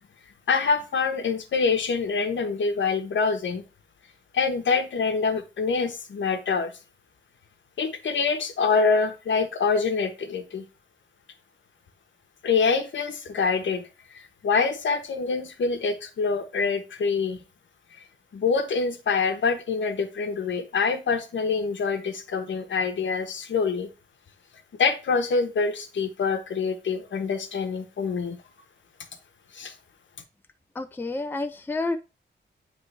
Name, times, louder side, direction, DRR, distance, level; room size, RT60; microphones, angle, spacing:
voice 1, 0.5-3.7 4.3-6.7 7.8-10.6 12.4-13.9 14.1-17.4 18.3-23.9 24.8-28.4 29.5-29.7, left 5 dB, 75° left, 7 dB, 1.0 m, -25 dB
voice 2, 30.8-32.0, left 2 dB, 10° left, 7 dB, 0.4 m, -29 dB
9.5 x 3.2 x 3.2 m, 0.29 s
wide cardioid pair, 170°, 19 cm